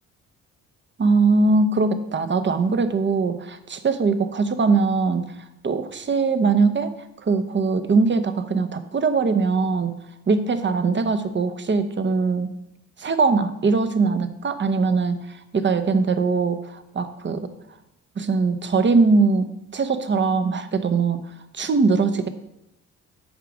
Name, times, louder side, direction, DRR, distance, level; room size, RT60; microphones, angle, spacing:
voice 1, 1.0-5.3 5.6-6.9 7.2-10.0 10.3-12.5 13.0-15.2 15.5-17.5 18.2-19.5 19.7-21.2 21.5-22.3, right 4 dB, 30° right, 10 dB, 0.9 m, -21 dB
7.5 x 4.7 x 6.1 m, 0.85 s
hypercardioid pair, 55°, 37 cm